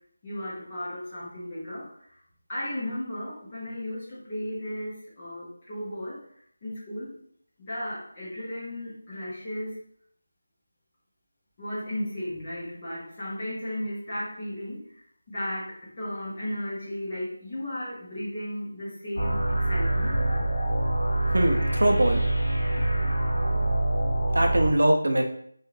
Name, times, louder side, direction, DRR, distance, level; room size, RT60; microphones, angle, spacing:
voice 1, 0.2-1.9 2.5-6.2 6.6-7.2 7.6-9.8 11.6-14.8 15.3-20.2, left 1 dB, 15° left, -7 dB, 0.5 m, -35 dB
sound 1, 19.2-24.7, right 1 dB, 55° left, 0.9 m, -25 dB
voice 2, 21.3-22.2 23.5-23.7 24.3-25.2, right 1 dB, 65° right, 3 dB, 0.5 m, -22 dB
2.4 x 2.2 x 3.1 m, 0.64 s
figure-of-eight pair, 180°, 0 cm